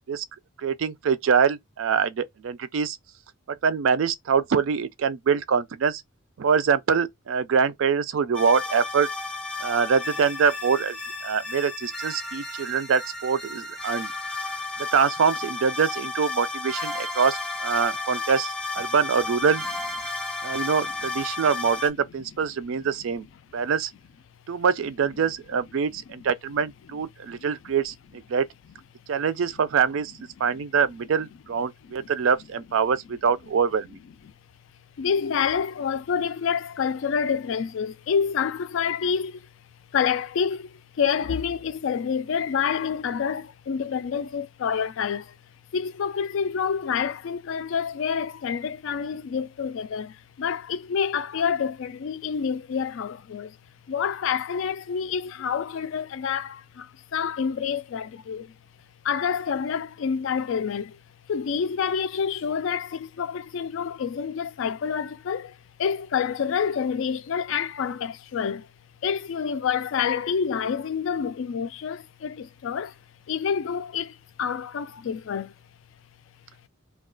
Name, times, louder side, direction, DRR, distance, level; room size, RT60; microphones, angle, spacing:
voice 1, 0.6-3.0 3.5-6.0 6.4-9.1 9.6-11.0 11.2-14.1 14.8-19.6 20.4-23.3 23.5-23.9 24.5-28.5 29.1-34.0, right 6 dB, 70° right, 0.4 m, -24 dB
sound 1, 8.3-21.9, left 3 dB, 5° left, 0.6 m, -33 dB
voice 2, 35.0-39.5 39.9-45.4 45.7-53.6 53.9-58.5 59.0-61.0 61.3-68.7 69.0-72.9 73.3-75.5, left 7 dB, 65° left, 0.3 m, -28 dB
2.3 x 2.3 x 3.7 m
head